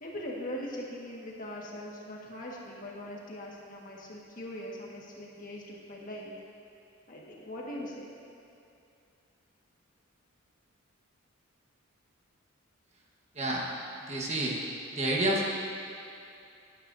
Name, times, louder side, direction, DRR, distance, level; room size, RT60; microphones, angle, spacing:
voice 1, 0.0-6.3 7.1-8.1, left 1 dB, 40° left, -3 dB, 1.7 m, -41 dB
voice 2, 13.3-13.6 14.0-14.5 14.9-15.5, right 1 dB, 30° right, -3 dB, 1.4 m, -29 dB
18.5 x 9.8 x 2.7 m, 2.6 s
head